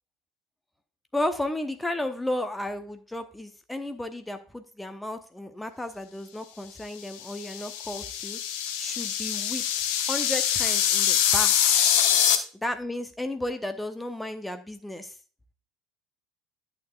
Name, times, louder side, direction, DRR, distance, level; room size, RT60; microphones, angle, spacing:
voice 1, 1.1-8.4 8.8-9.6 10.1-11.5 12.5-15.2, left 1 dB, 5° left, 8 dB, 0.8 m, -33 dB
sound 1, 7.2-12.4, left 9 dB, 60° left, 0.9 m, -24 dB
11.5 x 6.8 x 2.4 m, 0.38 s
figure-of-eight pair, 65°, 0 cm